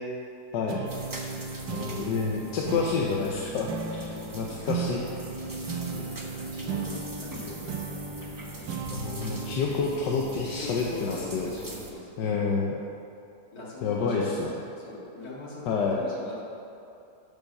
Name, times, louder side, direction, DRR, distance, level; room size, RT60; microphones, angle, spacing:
voice 1, 0.5-0.8 1.7-5.0 8.9-11.5 12.2-12.7 13.8-14.5 15.7-16.0, left 5 dB, 80° left, -1 dB, 1.4 m, -28 dB
sound 1, 0.7-11.5, right 5 dB, 70° right, 1.4 m, -37 dB
sound 2, 0.8-11.9, right 2 dB, 25° right, 0.4 m, -42 dB
voice 2, 4.5-5.0 5.7-8.1 10.4-12.1 13.5-16.4, left 1 dB, 60° left, -6 dB, 2.4 m, -42 dB
9.4 x 5.4 x 6.5 m, 2.6 s
omnidirectional pair, 1.8 m